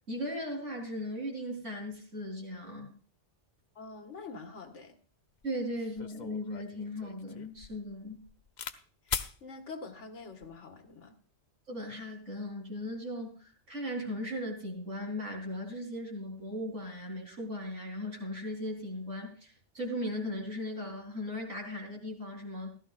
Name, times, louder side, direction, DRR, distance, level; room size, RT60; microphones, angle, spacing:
voice 1, 0.1-2.9 5.4-8.2 11.7-22.7, left 1 dB, 85° right, 0 dB, 4.1 m, -37 dB
voice 2, 3.8-5.0 9.1-11.2, left 4 dB, 80° left, 5 dB, 1.9 m, -46 dB
sound 1, 5.4-5.5 6.0-8.8 9.1-9.4 10.2-10.6, left 7 dB, 45° left, 0.7 m, -40 dB
16.0 x 13.5 x 2.5 m, 0.40 s
omnidirectional pair, 1.2 m